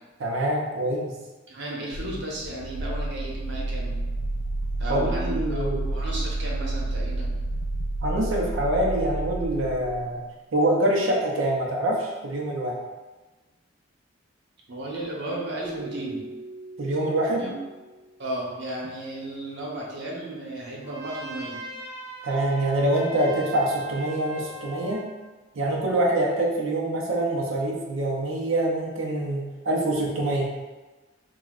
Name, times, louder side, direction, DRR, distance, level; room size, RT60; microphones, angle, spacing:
voice 1, 0.2-1.1 4.9-5.8 8.0-10.2 10.5-12.8 16.8-17.5 22.2-25.0 25.6-30.5, right 1 dB, 85° right, -2 dB, 0.6 m, -25 dB
voice 2, 1.5-3.9 4.8-7.3 14.7-16.2 17.4-17.5 18.2-21.6, right 1 dB, 65° right, -3 dB, 0.9 m, -34 dB
sound 1, 1.9-10.1, right 2 dB, 80° left, 0.3 m, -30 dB
Keyboard (musical), 15.6-18.4, right 2 dB, 20° left, 0.6 m, -42 dB
Trumpet, 20.8-25.1, right 2 dB, 15° right, 0.8 m, -40 dB
6.1 x 2.3 x 2.4 m, 1.2 s
head